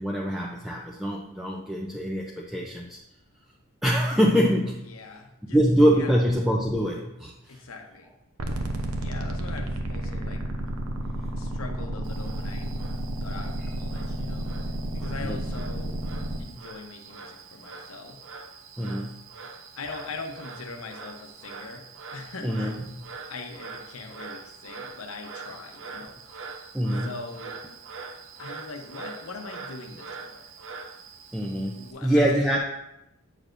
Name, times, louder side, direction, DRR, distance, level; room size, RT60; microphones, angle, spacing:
voice 1, 0.0-3.0 3.8-4.8 5.4-7.6 13.6-13.7 15.0-15.4 18.8-19.5 22.4-23.1 26.7-27.1 31.3-32.6, equal, ahead, -3 dB, 0.5 m, -25 dB
voice 2, 4.9-5.6 5.9-6.2 7.5-8.1 9.0-10.4 11.3-12.7 13.1-14.5 14.9-15.9 16.4-18.2 19.7-21.8 22.1-22.7 23.2-26.5 27.0-27.6 28.4-30.5 31.8-32.6, left 3 dB, 70° left, 4 dB, 0.9 m, -41 dB
sound 1, 8.4-16.4, right 1 dB, 90° right, 0.8 m, -31 dB
Frog, 12.0-31.9, right 4 dB, 60° right, 0.6 m, -43 dB
8.6 x 6.3 x 2.6 m, 0.85 s
head